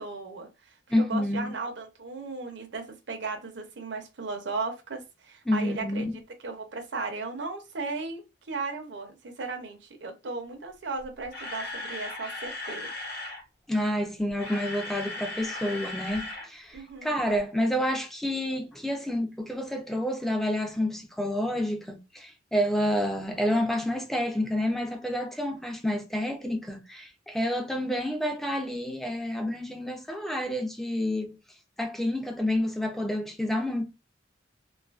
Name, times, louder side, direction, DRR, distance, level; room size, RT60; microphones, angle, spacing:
voice 1, 0.0-6.1 6.4-12.9 16.7-17.2, right 3 dB, 70° right, 0.6 m, -36 dB
voice 2, 0.9-1.5 5.5-6.2 13.7-31.4 31.8-33.8, left 1 dB, ahead, 0.4 m, -29 dB
Camera, 11.0-13.4 14.2-16.5 16.7-16.9 17.4-17.5, left 2 dB, 60° left, 0.9 m, -37 dB
2.5 x 2.4 x 2.4 m
head